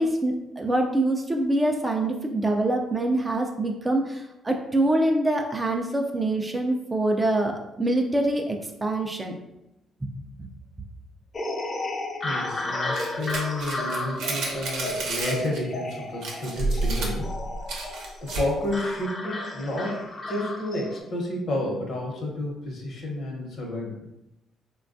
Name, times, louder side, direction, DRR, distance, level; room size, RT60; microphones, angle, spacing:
voice 1, 0.0-9.4 10.0-10.1, right 1 dB, 20° right, 2 dB, 0.3 m, -25 dB
sound 1, 11.3-21.0, left 1 dB, 35° left, 0.5 m, -33 dB
voice 2, 12.2-17.3 18.2-24.0, left 1 dB, 55° left, -1 dB, 0.9 m, -31 dB
sound 2, 12.9-15.6 15.9-16.0 16.2-18.6, right 2 dB, 75° right, 0.7 m, -30 dB
3.2 x 2.2 x 2.5 m, 0.91 s
cardioid pair, 100°, 0 cm